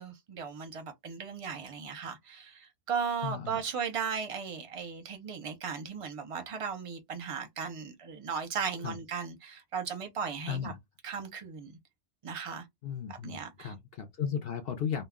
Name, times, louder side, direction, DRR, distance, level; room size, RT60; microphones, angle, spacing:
voice 1, 0.0-10.7 11.0-11.8 12.2-12.6 13.1-13.7, right 6 dB, 40° right, 0.5 m, -37 dB
voice 2, 3.2-3.6 8.8-9.0 10.5-10.8 12.8-15.0, left 8 dB, 65° left, 0.7 m, -35 dB
2.3 x 2.1 x 3.4 m
omnidirectional pair, 1.2 m